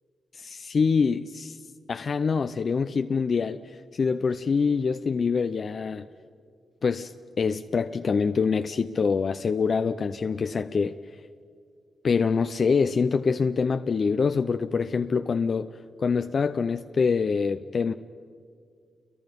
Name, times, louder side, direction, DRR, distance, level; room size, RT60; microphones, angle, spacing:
voice 1, 0.3-1.6 1.9-6.1 6.8-7.1 7.4-11.0 12.0-17.9, left 5 dB, 55° left, 0.6 m, -25 dB
29.0 x 23.0 x 5.3 m
cardioid pair, 75°, 0 cm